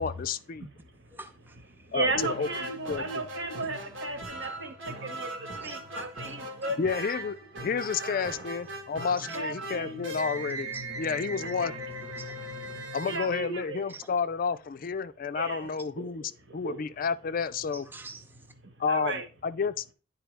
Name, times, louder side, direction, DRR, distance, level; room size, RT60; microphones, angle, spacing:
voice 1, 0.0-0.7 1.9-2.5 2.9-3.0 6.8-10.7 11.0-11.7 12.9-17.9 18.8-19.9, left 5 dB, 45° left, 0.4 m, -30 dB
voice 2, 0.6-1.2 1.7-7.2 8.0-8.3 9.3-10.2 11.4-11.7 12.6-12.7 13.0-13.8 15.3-16.8 18.6-19.2, right 3 dB, 65° right, 1.4 m, -36 dB
voice 3, 1.1-1.9 5.5-6.6 9.1-9.4 10.7-10.8 12.2-12.3 13.9-14.1 17.7-18.5, right 2 dB, 10° right, 0.7 m, -47 dB
sound 1, 2.2-14.0, right 1 dB, 90° right, 1.6 m, -39 dB
10.0 x 4.6 x 3.4 m
head